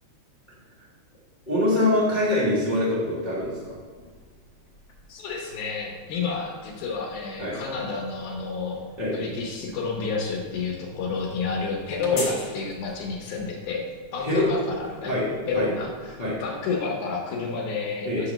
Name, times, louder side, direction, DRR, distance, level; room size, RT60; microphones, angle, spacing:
voice 1, 1.5-3.7 7.4-7.5 9.0-9.1 12.1-12.2 14.2-14.5 15.1-15.3 15.5-15.7 16.2-16.4 18.0-18.2, left 1 dB, 30° left, -8 dB, 0.9 m, -24 dB
sound 1, 3.3-16.7, left 2 dB, 55° left, 2.2 m, -46 dB
voice 2, 5.1-8.8 9.1-13.8 14.1-15.1 15.5-18.3, left 4 dB, 90° left, -2 dB, 2.3 m, -30 dB
8.4 x 2.9 x 6.2 m, 1.5 s
omnidirectional pair, 3.4 m